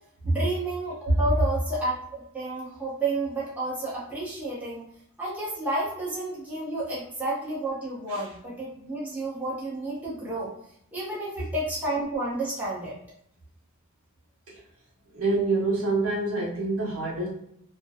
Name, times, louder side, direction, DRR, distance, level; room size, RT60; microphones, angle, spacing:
voice 1, 0.3-4.8 5.2-10.5 10.9-12.9, right 2 dB, 5° right, -8 dB, 0.8 m, -31 dB
voice 2, 15.1-17.3, right 2 dB, 75° right, -4 dB, 0.9 m, -26 dB
2.6 x 2.1 x 2.4 m, 0.72 s
head